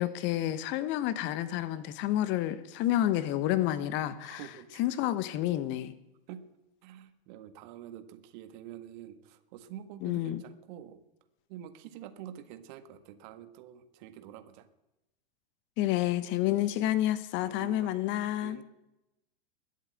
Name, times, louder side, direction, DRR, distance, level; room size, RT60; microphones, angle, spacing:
voice 1, 0.0-4.5 4.7-5.9 10.0-10.4 15.8-18.6, left 13 dB, 40° left, 14 dB, 1.2 m, -29 dB
voice 2, 4.2-4.9 6.3-6.4 6.8-11.0 11.5-14.7 17.4-17.9 18.4-18.6, right 10 dB, 50° right, 8 dB, 1.8 m, -47 dB
21.5 x 8.4 x 7.7 m, 0.92 s
figure-of-eight pair, 95°, 31 cm